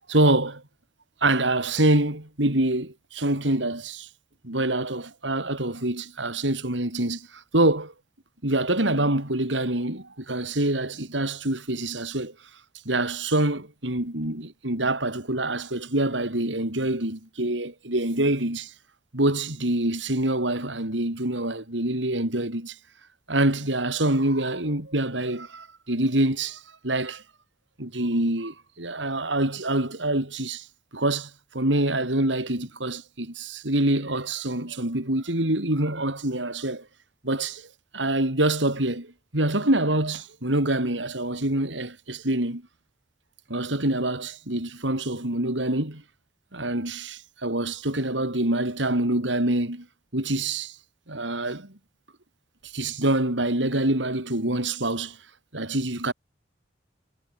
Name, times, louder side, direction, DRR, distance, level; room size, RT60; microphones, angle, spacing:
voice 1, 0.1-0.6 1.2-4.1 4.4-7.9 8.4-12.3 12.8-18.7 19.1-22.8 23.3-27.2 27.8-30.7 30.9-36.9 37.2-37.7 37.9-42.6 43.5-46.0 46.5-49.9 50.1-50.8 51.1-51.7 52.6-55.2 55.5-56.1, right 1 dB, 85° right, 4.8 m, -26 dB
head